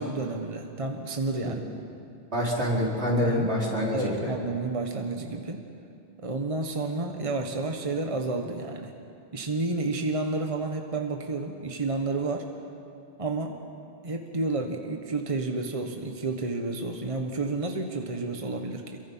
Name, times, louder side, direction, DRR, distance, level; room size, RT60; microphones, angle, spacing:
voice 1, 0.0-1.6 3.2-3.5 3.9-5.6 6.2-8.9 9.3-12.5 13.2-13.6 14.0-19.0, right 3 dB, 30° right, 4 dB, 1.4 m, -30 dB
voice 2, 2.3-4.3, equal, 80° right, -4 dB, 4.8 m, -26 dB
27.0 x 23.5 x 5.7 m, 2.6 s
omnidirectional pair, 1.1 m